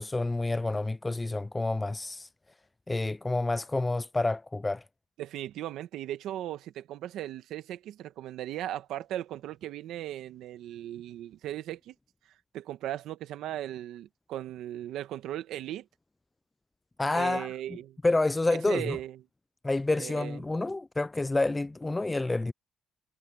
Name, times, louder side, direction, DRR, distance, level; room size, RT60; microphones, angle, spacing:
voice 1, 0.0-2.3 2.9-4.8 17.0-17.5 18.0-19.0 19.6-22.5, left 2 dB, 20° left, 0.3 m, -28 dB
voice 2, 5.2-11.9 12.5-15.9 17.1-18.0 18.5-19.2 20.0-20.4, right 12 dB, 85° right, 1.3 m, -37 dB
cardioid pair, 90°, 0 cm